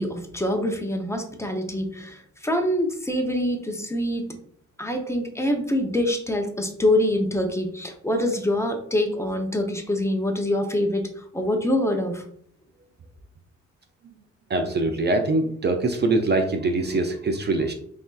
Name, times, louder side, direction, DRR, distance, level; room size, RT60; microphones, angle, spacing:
voice 1, 0.0-4.3 4.8-12.2, left 1 dB, 10° left, 4 dB, 0.7 m, -25 dB
voice 2, 14.5-17.7, right 2 dB, 35° right, 5 dB, 0.5 m, -23 dB
5.9 x 2.6 x 2.4 m, 0.63 s
cardioid pair, 90°, 30 cm